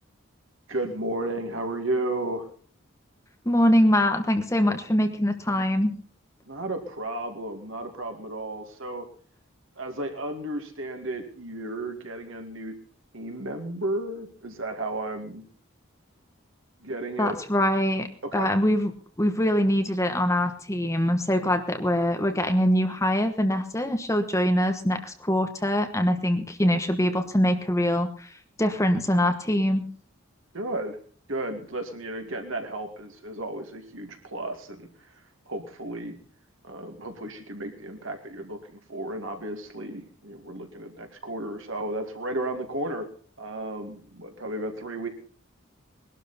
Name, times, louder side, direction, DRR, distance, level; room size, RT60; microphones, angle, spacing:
voice 1, 0.7-2.5 6.5-9.1 9.8-12.7 13.1-15.5 16.8-17.4 18.2-18.5 30.5-31.0 31.3-35.1 35.5-36.2 36.6-43.1 43.4-45.1, right 1 dB, 70° right, 5 dB, 2.3 m, -33 dB
voice 2, 3.4-5.9 17.2-18.1 18.3-18.9 19.2-28.3 28.6-29.9, equal, 15° left, 6 dB, 1.2 m, -23 dB
21.0 x 12.0 x 4.3 m, 0.42 s
head